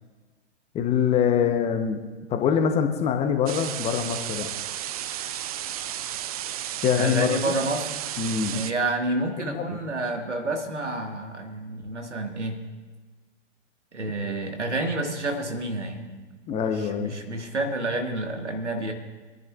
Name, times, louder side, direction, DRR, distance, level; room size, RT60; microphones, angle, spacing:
voice 1, 0.7-2.0 2.3-4.5 6.8-7.5 8.2-8.6 9.5-9.6 16.5-17.1, left 7 dB, 20° left, 6 dB, 0.8 m, -24 dB
sound 1, 3.5-8.7, right 11 dB, 35° right, 0.4 m, -33 dB
voice 2, 6.9-8.0 8.5-12.6 13.9-16.2 16.7-18.9, right 2 dB, 80° right, 4 dB, 1.7 m, -29 dB
25.0 x 10.5 x 2.4 m, 1.3 s
figure-of-eight pair, 110°, 34 cm